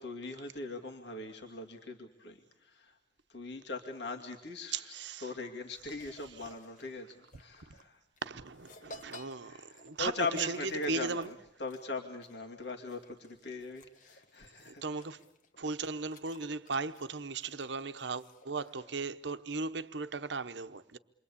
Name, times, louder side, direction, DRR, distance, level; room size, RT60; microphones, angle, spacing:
voice 1, 0.0-3.0 3.3-8.0 9.4-14.9 18.6-18.9, left 3 dB, 70° left, 2.4 m, -40 dB
voice 2, 4.7-5.3 8.2-11.3 14.6-15.2 15.6-21.0, right 4 dB, 75° right, 1.0 m, -37 dB
sound 1, 5.8-18.7, left 1 dB, 45° left, 1.4 m, -55 dB
28.0 x 23.0 x 8.5 m
head